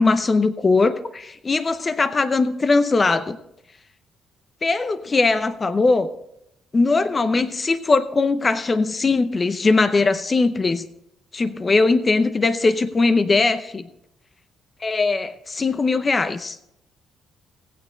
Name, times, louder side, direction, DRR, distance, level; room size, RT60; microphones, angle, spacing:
voice 1, 0.0-3.4 4.6-6.1 6.7-10.9 11.3-13.9 14.8-16.6, left 3 dB, 30° left, 10 dB, 0.7 m, -20 dB
16.0 x 9.3 x 3.9 m, 0.78 s
cardioid pair, 90°, 0 cm